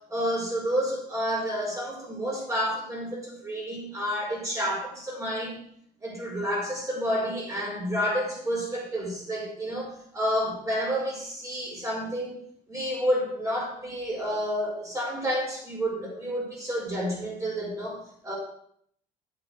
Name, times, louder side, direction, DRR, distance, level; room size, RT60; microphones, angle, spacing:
voice 1, 0.0-5.6 6.0-12.4 12.7-18.4, equal, 20° right, -3 dB, 5.2 m, -30 dB
8.9 x 7.5 x 6.5 m, 0.65 s
cardioid pair, 110°, 17 cm